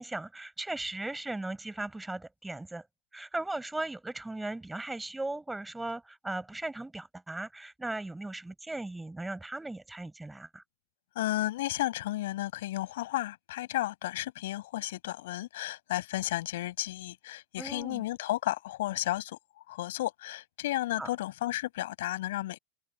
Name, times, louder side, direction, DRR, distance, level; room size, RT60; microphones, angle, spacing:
voice 1, 0.0-2.9 3.1-10.6 17.6-18.0 21.0-21.1, right 2 dB, 10° right, 4.7 m, -37 dB
voice 2, 11.1-19.4 19.7-22.6, left 16 dB, 75° left, 5.3 m, -33 dB
hypercardioid pair, 95°, 0 cm